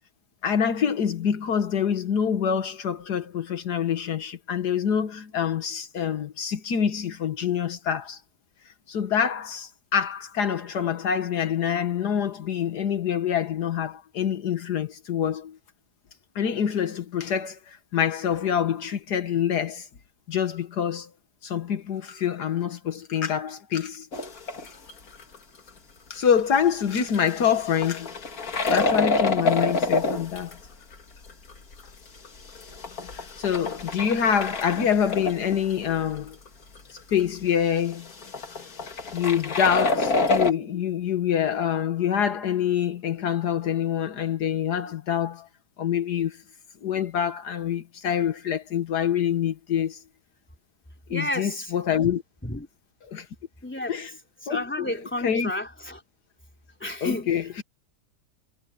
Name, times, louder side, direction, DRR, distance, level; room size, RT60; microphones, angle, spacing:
voice 1, 0.4-8.2 8.9-15.6 16.3-19.9 20.3-21.1 21.4-24.1 24.6-24.7 26.1-28.1 28.6-30.6 33.1-36.4 36.9-38.1 39.1-45.5 45.8-46.4 46.8-50.0 51.1-52.2 53.0-53.3 53.9-54.1 54.5-55.0 55.2-55.5 57.0-57.6, left 8 dB, 75° left, 1.8 m, -26 dB
sound 1, 24.1-24.9 25.2-25.4 25.7-25.8 26.5-26.6 27.1-30.5 30.9-31.0 31.3-31.8 32.2-35.8 36.2-36.3 36.5-36.6 36.8-37.2 37.9-40.5, left 3 dB, 60° left, 2.5 m, -27 dB
voice 2, 51.1-51.7 52.0-52.2 52.4-52.7 53.6-54.0 54.5-56.0 56.8-57.6, left 1 dB, 5° left, 3.2 m, -32 dB
omnidirectional pair, 1.8 m